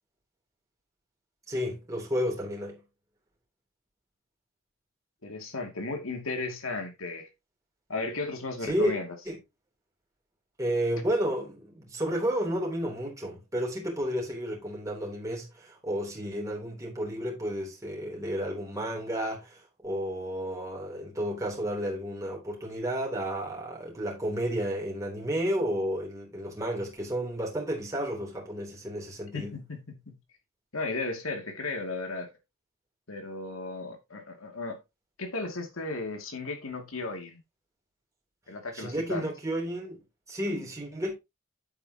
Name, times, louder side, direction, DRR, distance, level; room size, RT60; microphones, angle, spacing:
voice 1, 1.5-2.8 8.6-8.9 9.3-9.4 10.6-29.6 38.7-40.0 40.3-41.1, equal, 15° right, 3.2 m, -32 dB
voice 2, 5.2-7.3 7.9-9.2 29.3-30.2 30.7-32.3 33.1-34.8 35.2-37.4 38.5-39.3, left 3 dB, 85° left, 2.4 m, -35 dB
9.0 x 8.2 x 2.8 m
head